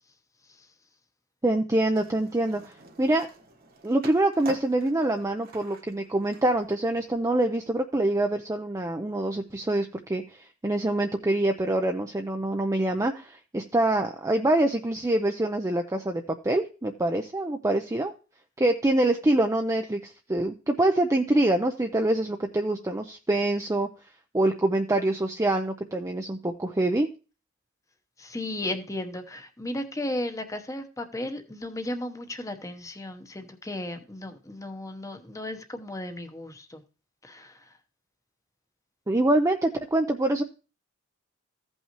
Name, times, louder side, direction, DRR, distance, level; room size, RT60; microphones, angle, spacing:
voice 1, 1.4-3.3 3.8-18.1 18.6-23.9 24.3-27.1 39.1-40.4, right 1 dB, 15° right, 0.5 m, -25 dB
Skateboard, 1.9-7.2, right 3 dB, 45° right, 1.3 m, -47 dB
voice 2, 28.2-36.8 37.2-37.6, left 1 dB, 15° left, 0.9 m, -35 dB
15.5 x 5.5 x 3.0 m
head